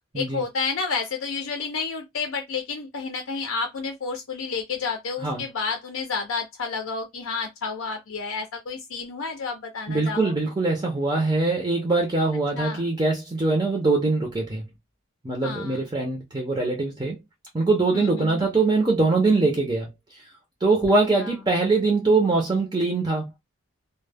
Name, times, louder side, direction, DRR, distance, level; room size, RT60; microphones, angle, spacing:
voice 1, 0.1-10.4 12.5-12.8 15.4-15.8 17.9-18.5 21.2-21.3, left 4 dB, 75° left, 0.5 m, -30 dB
voice 2, 9.9-14.6 15.2-17.2 17.5-19.9 20.6-23.3, right 3 dB, 20° right, 0.5 m, -22 dB
2.1 x 2.0 x 3.3 m
head